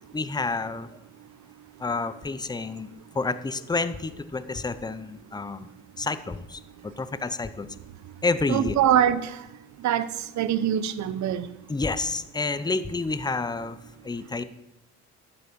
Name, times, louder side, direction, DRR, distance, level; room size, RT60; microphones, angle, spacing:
voice 1, 0.1-0.9 1.8-2.9 3.1-5.7 6.0-7.7 8.2-8.8 11.7-13.8 14.0-14.4, left 3 dB, 15° left, 13 dB, 0.6 m, -29 dB
voice 2, 8.5-9.4 9.8-10.1 10.4-11.5, right 10 dB, 65° right, 13 dB, 0.7 m, -23 dB
10.5 x 7.0 x 5.2 m, 0.90 s
cardioid pair, 90°, 30 cm